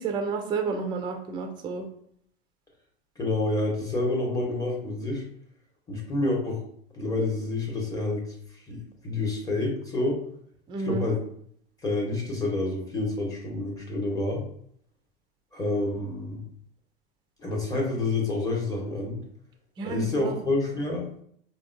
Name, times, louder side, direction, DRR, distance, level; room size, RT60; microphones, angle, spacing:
voice 1, 0.0-1.9 10.7-11.1 19.8-20.4, right 5 dB, 15° right, 4 dB, 0.4 m, -30 dB
voice 2, 3.2-5.3 5.9-6.6 6.9-8.3 8.7-8.8 9.0-10.2 10.8-11.2 11.8-14.4 15.5-16.4 17.4-19.2 19.8-21.1, left 2 dB, 10° left, -2 dB, 0.9 m, -28 dB
3.4 x 2.2 x 2.5 m, 0.65 s
hypercardioid pair, 105°, 31 cm